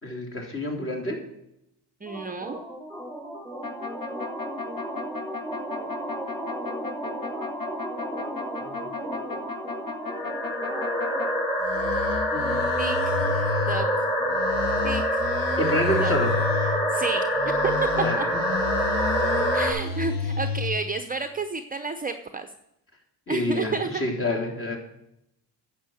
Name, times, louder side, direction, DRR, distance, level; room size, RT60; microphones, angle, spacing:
voice 1, 0.0-1.2 8.6-8.8 12.3-12.6 13.2-13.3 14.2-14.6 15.6-16.3 18.0-18.3 19.3-19.5 23.3-24.8, left 1 dB, 30° left, 0 dB, 3.5 m, -28 dB
voice 2, 2.0-2.6 12.8-13.1 13.7-13.9 14.8-15.2 16.0-16.1 16.9-17.2 17.6-17.9 18.2-18.3 19.5-22.5 23.3-24.0, right 4 dB, 20° right, 7 dB, 0.7 m, -30 dB
sound 1, 2.1-19.7, equal, ahead, 3.9 m, -27 dB
sound 2, 3.6-11.3 11.6-13.8 14.3-16.8 17.3-20.7, left 5 dB, 50° left, 1.5 m, -32 dB
10.5 x 7.4 x 7.8 m, 0.81 s
cardioid pair, 100°, 43 cm